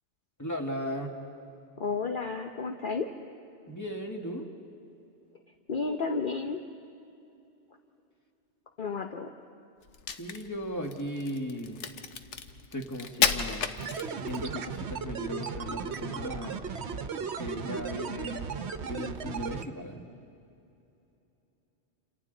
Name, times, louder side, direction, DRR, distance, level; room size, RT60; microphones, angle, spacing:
voice 1, 0.4-1.2 3.7-4.5 10.1-11.8 12.7-13.7 14.2-16.7 17.2-18.6 18.9-20.0, equal, 15° left, 2 dB, 1.7 m, -36 dB
voice 2, 1.8-3.1 5.7-6.6 8.8-9.3, left 4 dB, 50° left, 3 dB, 1.0 m, -32 dB
Crack, 9.9-14.5, left 6 dB, 80° left, 1.2 m, -32 dB
sound 1, 13.8-19.7, right 6 dB, 70° right, 1.1 m, -36 dB
28.5 x 27.5 x 3.9 m, 2.8 s
omnidirectional pair, 1.2 m